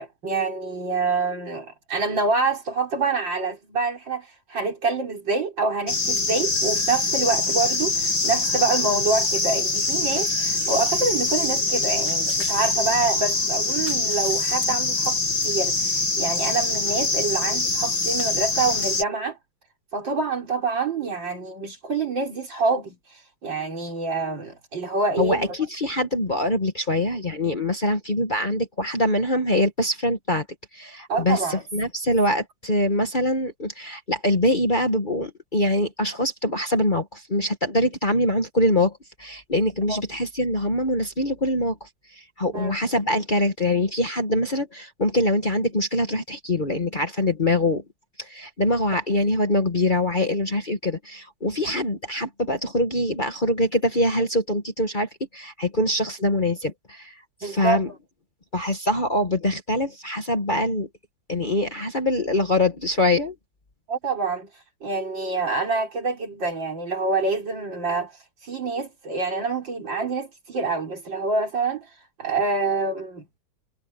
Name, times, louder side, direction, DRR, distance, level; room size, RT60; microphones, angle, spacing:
voice 1, 0.0-15.2 15.4-19.4 19.9-25.5 31.1-31.6 39.9-40.0 42.5-42.8 57.4-57.8 63.9-73.4, right 3 dB, 80° right, 5.2 m, -26 dB
sound 1, 5.9-19.0, left 3 dB, 80° left, 6.9 m, -24 dB
voice 2, 25.2-30.4 30.7-41.9 42.4-47.8 48.2-57.1 57.4-57.9 58.5-60.9 61.3-63.3, left 1 dB, 30° left, 1.4 m, -24 dB
omnidirectional pair, 2.0 m